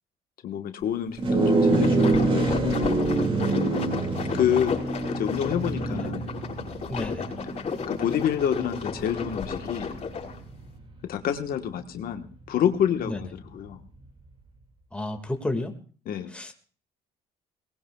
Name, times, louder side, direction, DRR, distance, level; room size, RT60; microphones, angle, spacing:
voice 1, 0.4-3.2 4.3-4.8 5.1-6.3 7.9-9.9 11.0-13.8 16.1-16.5, left 9 dB, 60° left, 7 dB, 1.2 m, -28 dB
sound 1, 1.2-10.8, right 2 dB, 30° right, 2.1 m, -26 dB
sound 2, 1.5-10.4, left 5 dB, 40° left, 5.1 m, -33 dB
voice 2, 6.9-7.3 13.1-13.3 14.9-15.7 16.3-16.5, left 1 dB, 5° left, 4 dB, 1.8 m, -32 dB
22.0 x 19.5 x 2.3 m, 0.41 s
cardioid pair, 110°, 17 cm